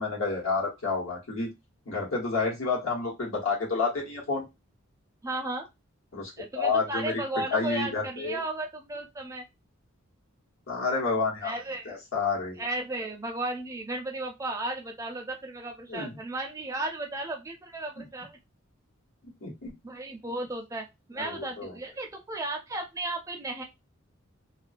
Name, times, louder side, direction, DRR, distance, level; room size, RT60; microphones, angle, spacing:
voice 1, 0.0-1.5 1.9-4.5 6.1-6.3 6.6-7.2 7.5-8.4 10.7-11.5 11.9-12.6 15.9-16.2 18.0-18.1 19.4-19.7 21.2-21.7, left 4 dB, 80° left, -2 dB, 1.0 m, -29 dB
voice 2, 5.2-5.7 6.4-9.5 11.4-11.9 12.6-18.4 19.8-23.6, right 2 dB, 15° right, 2 dB, 0.4 m, -34 dB
2.3 x 2.2 x 2.4 m, 0.22 s
head